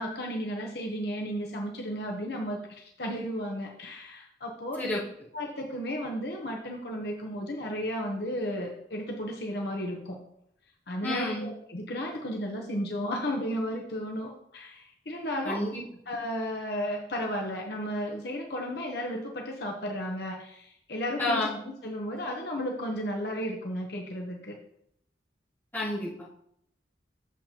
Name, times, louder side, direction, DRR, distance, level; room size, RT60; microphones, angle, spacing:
voice 1, 0.0-4.8 5.3-10.2 10.9-15.6 16.1-21.5 21.8-24.5, equal, 60° left, 0 dB, 0.9 m, -34 dB
voice 2, 11.0-11.5 15.4-15.8 21.2-21.6 25.7-26.1, left 1 dB, 10° left, -11 dB, 3.1 m, -29 dB
8.3 x 7.1 x 2.9 m, 0.74 s
head